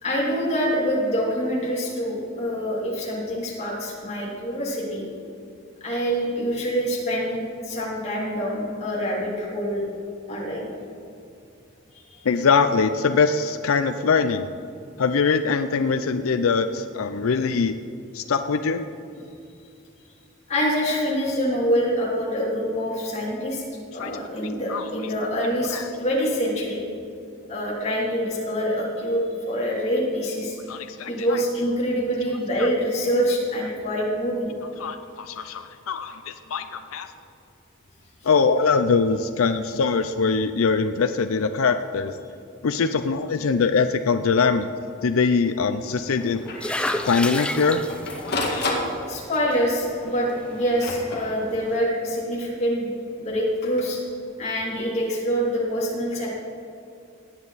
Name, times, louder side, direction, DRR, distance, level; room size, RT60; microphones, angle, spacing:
voice 1, 0.0-5.1 5.8-9.8 10.3-10.7 11.9-12.3 20.5-23.6 23.9-26.8 27.5-30.6 31.1-34.5 49.1-52.9 53.2-54.0 54.4-56.3, equal, 30° left, -5 dB, 2.9 m, -25 dB
voice 2, 12.2-14.5 15.0-17.8 18.1-18.8 24.0-24.1 24.7-24.8 25.7-25.9 30.7-31.4 32.6-32.7 34.8-37.1 38.2-42.1 42.6-44.7 45.0-46.5 47.0-47.8 48.3-48.7, left 5 dB, 90° left, 9 dB, 0.5 m, -22 dB
Printer, 44.8-44.9 45.2-45.3 45.7-45.8 46.5-46.7 47.3-49.5 50.3-51.7 53.4-53.8, left 2 dB, 50° left, 1.9 m, -31 dB
sound 1, 46.2-51.8, left 1 dB, 5° left, 0.4 m, -33 dB
17.5 x 9.6 x 4.1 m, 2.5 s
head